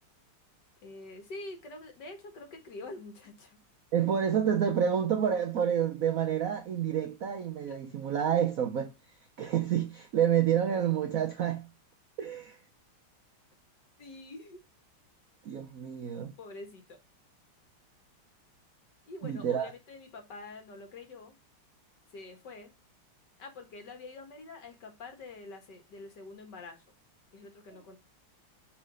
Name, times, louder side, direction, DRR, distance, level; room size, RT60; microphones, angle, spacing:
voice 1, 0.8-3.6 7.7-7.8 14.0-14.6 16.4-17.0 19.1-21.3 22.1-22.7 23.4-26.8 27.3-28.0, left 3 dB, 55° left, 2.1 m, -46 dB
voice 2, 3.9-8.9 9.4-11.7 12.2-12.6 15.4-16.3 19.2-19.7, right 9 dB, 70° right, 0.8 m, -28 dB
6.3 x 4.4 x 6.2 m
omnidirectional pair, 2.3 m